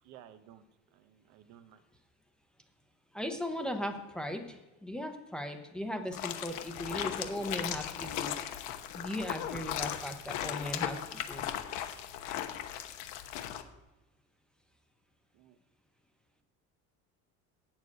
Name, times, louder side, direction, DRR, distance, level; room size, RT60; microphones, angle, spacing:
voice 1, 0.0-0.6 0.9-1.8 15.3-15.6, right 11 dB, 65° right, 11 dB, 0.8 m, -55 dB
voice 2, 3.1-4.6 4.8-8.4 8.9-11.0 11.3-11.4, left 1 dB, 5° left, 4 dB, 0.8 m, -37 dB
sound 1, 6.1-13.6, left 11 dB, 70° left, 1.1 m, -37 dB
7.9 x 7.4 x 8.4 m, 1.1 s
cardioid pair, 175°, 31 cm